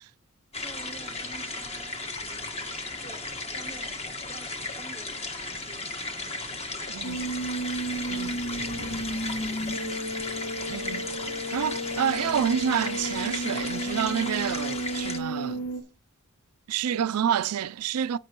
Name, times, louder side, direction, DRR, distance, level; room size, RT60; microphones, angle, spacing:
sound 1, 0.5-15.2, left 2 dB, 30° left, 1.4 m, -35 dB
voice 1, 0.6-7.4 8.5-10.4, right 2 dB, 45° left, 5.9 m, -51 dB
sound 2, 7.0-15.8, right 1 dB, 85° left, 2.7 m, -33 dB
voice 2, 8.1-8.4 10.7-11.1 11.5-15.6 16.7-18.2, right 8 dB, 90° right, 0.4 m, -28 dB
15.0 x 6.1 x 3.0 m
head